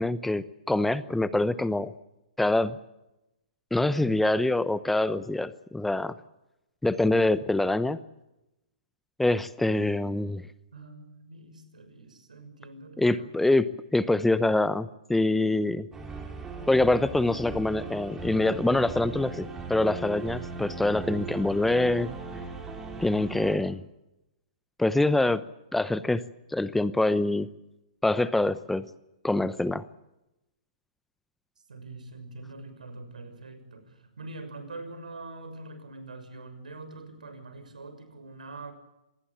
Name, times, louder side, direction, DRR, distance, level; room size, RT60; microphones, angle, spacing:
voice 1, 0.0-1.9 2.4-2.8 3.7-6.1 6.8-8.0 9.2-10.4 13.0-15.9 16.7-22.1 23.0-23.8 24.8-25.4 25.7-26.2 26.5-27.5 28.0-28.8 29.2-29.8, left 2 dB, 5° left, 15 dB, 0.8 m, -25 dB
voice 2, 10.7-13.3 31.7-38.7, right 2 dB, 80° right, 10 dB, 6.4 m, -44 dB
sound 1, 15.9-23.6, right 3 dB, 10° right, 4.8 m, -38 dB
26.0 x 20.0 x 7.4 m, 0.92 s
hypercardioid pair, 125°, 4 cm